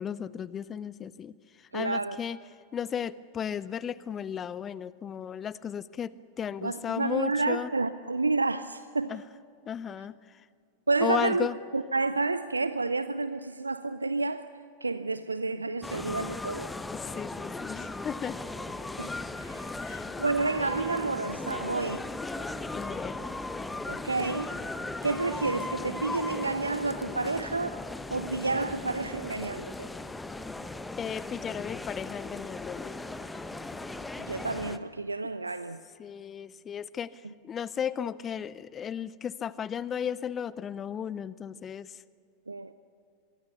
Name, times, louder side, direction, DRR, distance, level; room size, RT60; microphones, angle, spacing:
voice 1, 0.0-2.4 2.7-7.7 9.1-9.2 9.7-10.4 11.0-11.5 16.9-18.4 19.7-20.1 22.7-23.2 31.0-33.0 35.2-35.3 36.0-42.0, left 8 dB, 25° left, 0.5 m, -35 dB
voice 2, 1.7-2.2 6.6-9.2 10.9-11.5 11.7-14.5 14.8-16.7 19.0-22.1 23.9-24.5 25.0-27.8 28.1-29.9 34.3-35.8 42.5-42.7, right 3 dB, 80° right, 0.5 m, -30 dB
sound 1, 15.8-34.8, left 2 dB, 10° left, 1.0 m, -37 dB
25.0 x 23.0 x 6.9 m
figure-of-eight pair, 90°, 0 cm